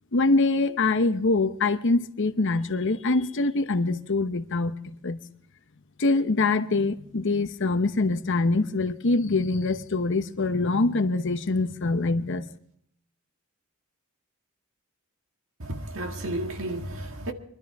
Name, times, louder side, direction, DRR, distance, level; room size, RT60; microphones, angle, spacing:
voice 1, 0.1-5.2 6.0-12.5, left 3 dB, 55° left, 0.9 m, -24 dB
voice 2, 15.6-17.3, right 1 dB, 60° right, 1.9 m, -32 dB
23.5 x 12.5 x 3.5 m
head